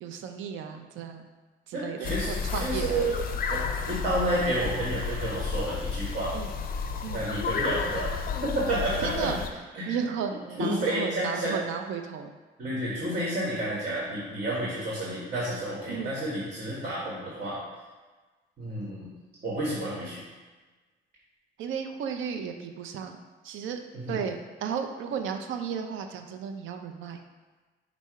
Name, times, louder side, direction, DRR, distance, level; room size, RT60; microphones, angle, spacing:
voice 1, 0.0-1.2 1.7-3.1 6.3-6.5 7.0-7.2 9.0-9.4 9.9-12.4 15.9-16.1 21.6-23.2 23.4-23.8 24.1-27.2, right 7 dB, 75° right, 5 dB, 0.4 m, -34 dB
voice 2, 1.7-3.1 3.5-6.3 7.1-8.1 8.4-9.3 9.7-9.9 10.5-11.6 12.6-17.6 18.6-19.1 19.4-20.2 23.9-24.2, right 1 dB, 50° right, -6 dB, 1.3 m, -30 dB
sound 1, 2.0-9.5, left 5 dB, 45° left, 0.4 m, -32 dB
5.4 x 2.0 x 4.6 m, 1.3 s
cardioid pair, 90°, 20 cm